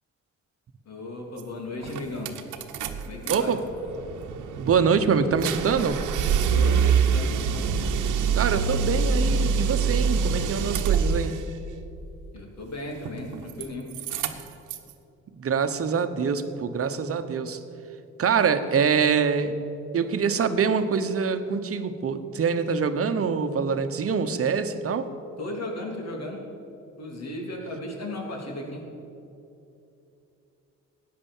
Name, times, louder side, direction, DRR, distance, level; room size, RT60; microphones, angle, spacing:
voice 1, 0.8-2.4 3.0-3.6 6.5-7.7 12.3-13.9 25.4-26.5 27.0-28.9, left 1 dB, 60° left, 1 dB, 3.2 m, -35 dB
sound 1, 1.4-1.5 1.8-3.4 3.7-11.5 13.0-13.7 13.9-14.9, right 6 dB, 80° right, 1.1 m, -25 dB
voice 2, 3.3-3.6 4.6-6.0 8.3-11.3 15.3-17.6 18.2-19.5 19.9-25.1, right 6 dB, 50° right, 10 dB, 1.1 m, -24 dB
14.5 x 9.7 x 7.3 m, 2.8 s
cardioid pair, 90°, 30 cm